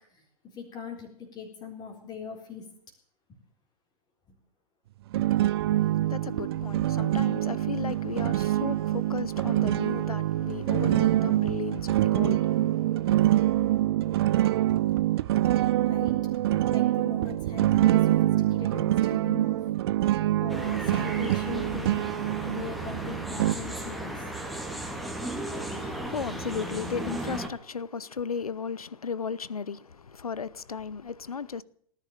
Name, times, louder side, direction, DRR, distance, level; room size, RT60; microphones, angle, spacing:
voice 1, 0.5-2.6 3.3-3.4 15.9-16.2 16.7-19.6 20.4-21.9 22.4-24.5, left 6 dB, 20° left, 4.1 m, -41 dB
sound 1, 5.1-23.5, right 14 dB, 40° right, 0.6 m, -25 dB
voice 2, 5.7-13.8 25.7-31.6, left 5 dB, 70° left, 0.9 m, -35 dB
sound 2, 20.5-27.5, right 1 dB, ahead, 2.2 m, -35 dB
18.5 x 11.0 x 6.7 m
figure-of-eight pair, 110°, 19 cm